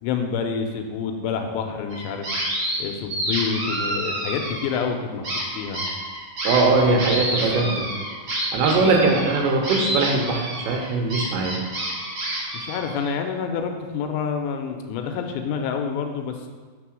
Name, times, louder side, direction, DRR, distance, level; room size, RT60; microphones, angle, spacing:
voice 1, 0.0-2.3 2.8-5.3 5.6-5.8 6.9-7.8 8.8-8.9 12.5-16.5, left 6 dB, 85° left, 5 dB, 2.9 m, -28 dB
sound 1, 1.9-2.8 3.1-4.9 5.2-13.1, right 1 dB, 50° right, 1.8 m, -28 dB
voice 2, 6.4-7.9 8.5-11.6, right 3 dB, 90° right, 1 dB, 3.2 m, -21 dB
6.7 x 3.6 x 6.2 m, 1.4 s
omnidirectional pair, 4.9 m